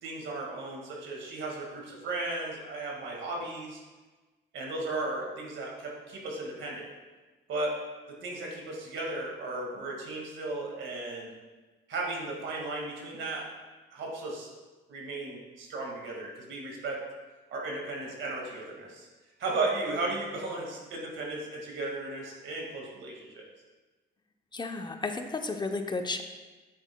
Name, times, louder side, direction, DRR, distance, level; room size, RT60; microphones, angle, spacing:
voice 1, 0.0-3.8 4.5-6.9 7.5-11.3 11.9-13.5 13.9-14.5 14.9-17.0 17.5-19.1 19.4-23.5, right 2 dB, 70° right, -1 dB, 2.0 m, -35 dB
voice 2, 24.5-26.2, left 3 dB, 20° left, 5 dB, 0.7 m, -33 dB
9.2 x 7.8 x 2.3 m, 1.2 s
cardioid pair, 90°, 20 cm